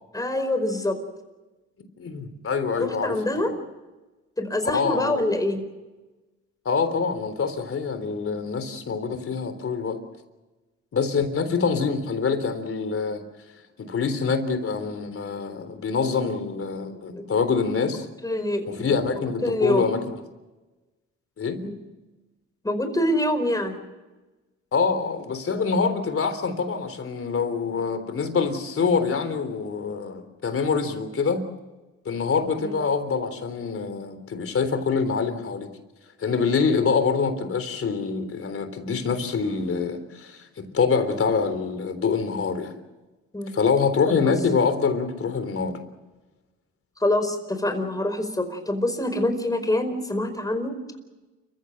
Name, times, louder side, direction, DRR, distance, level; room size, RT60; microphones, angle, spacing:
voice 1, 0.1-1.0 2.8-3.5 4.4-5.6 17.1-17.2 18.2-19.9 21.6-21.8 22.6-23.8 32.6-32.7 43.3-43.5 44.1-44.2 47.0-50.8, left 1 dB, 10° left, 7 dB, 4.8 m, -25 dB
voice 2, 2.0-3.2 3.4-3.6 4.7-5.4 6.7-10.0 10.9-13.3 13.8-18.1 18.7-20.1 21.4-21.6 24.7-31.4 32.1-35.7 36.2-42.7 43.5-45.8, left 5 dB, 45° left, 9 dB, 3.6 m, -25 dB
30.0 x 15.5 x 7.6 m, 1.1 s
cardioid pair, 90°, 30 cm